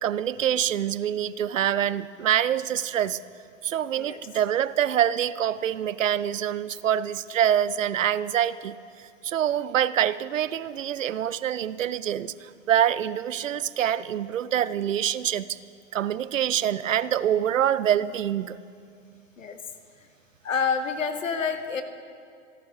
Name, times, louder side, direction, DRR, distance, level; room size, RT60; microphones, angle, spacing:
voice 1, 0.0-3.2 3.6-15.6 15.9-18.6, right 10 dB, 85° right, 17 dB, 0.5 m, -25 dB
voice 2, 20.4-21.8, left 5 dB, 85° left, 8 dB, 1.2 m, -28 dB
27.5 x 12.0 x 3.0 m, 2.4 s
hypercardioid pair, 95°, 38 cm